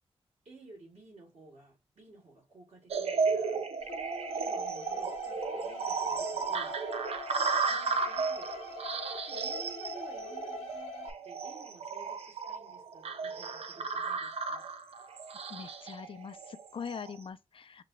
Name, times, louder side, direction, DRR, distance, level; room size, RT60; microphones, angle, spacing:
voice 1, 0.4-3.6 4.3-6.8 7.7-8.5 9.0-15.0, right 2 dB, 85° right, 2.9 m, -54 dB
sound 1, 2.9-17.2, right 5 dB, 70° right, 0.5 m, -34 dB
sound 2, 3.8-11.1, left 4 dB, 85° left, 0.8 m, -44 dB
voice 2, 15.5-17.8, left 6 dB, 55° left, 0.4 m, -42 dB
5.8 x 2.2 x 3.0 m
wide cardioid pair, 80°, 11 cm